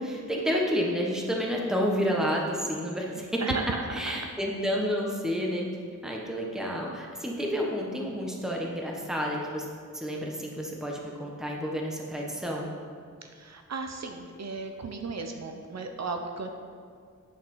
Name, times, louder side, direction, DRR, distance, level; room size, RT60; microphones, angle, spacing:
voice 1, 0.0-3.4 3.9-5.7 6.0-9.7 9.9-12.7, equal, ahead, -2 dB, 1.2 m, -30 dB
voice 2, 3.4-4.1 13.2-16.5, right 4 dB, 60° right, 4 dB, 0.7 m, -35 dB
9.6 x 5.7 x 5.5 m, 2.1 s
wide cardioid pair, 115°, 31 cm